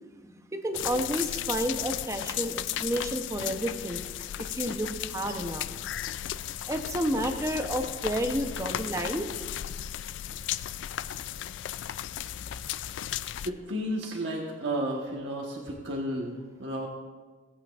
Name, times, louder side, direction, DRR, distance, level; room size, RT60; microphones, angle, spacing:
voice 1, 0.2-5.7 6.7-9.3, right 1 dB, 15° right, 6 dB, 0.7 m, -31 dB
sound 1, 0.7-13.5, left 11 dB, 80° left, 0.3 m, -35 dB
voice 2, 13.4-16.9, right 1 dB, 80° right, -1 dB, 1.2 m, -32 dB
17.5 x 8.4 x 2.4 m, 1.4 s
head